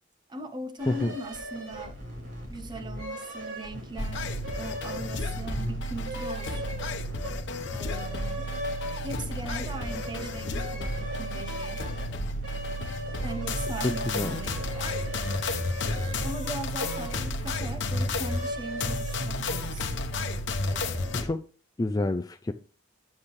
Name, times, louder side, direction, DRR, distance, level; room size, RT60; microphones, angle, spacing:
voice 1, 0.3-2.0 2.5-6.8 7.7-8.5 9.0-11.9 13.2-15.0 15.9-19.9 20.6-21.4, right 1 dB, 25° right, 0.8 m, -40 dB
sound 1, 0.8-20.2, equal, 65° right, 4.6 m, -38 dB
sound 2, 4.0-21.2, left 1 dB, 60° left, 1.0 m, -32 dB
voice 2, 13.8-14.4 21.1-21.4 21.8-22.5, left 2 dB, 20° left, 0.4 m, -28 dB
8.6 x 7.6 x 3.2 m
head